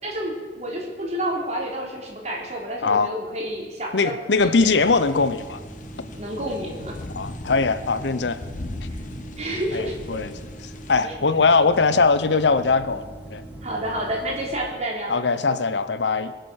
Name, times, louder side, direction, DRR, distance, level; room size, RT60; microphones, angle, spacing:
voice 1, 0.0-4.3 4.6-4.7 6.1-7.0 9.4-10.2 11.0-11.1 13.6-15.2, right 1 dB, 40° right, -1 dB, 3.7 m, -29 dB
voice 2, 2.8-3.1 3.9-5.6 7.1-8.4 9.7-10.3 10.9-13.4 15.1-16.3, left 4 dB, 80° left, 13 dB, 0.8 m, -21 dB
sound 1, 4.4-14.5, right 1 dB, 10° right, 3.0 m, -41 dB
sound 2, 4.7-11.0, left 1 dB, 45° left, 1.0 m, -39 dB
23.5 x 7.9 x 6.5 m, 1.4 s
head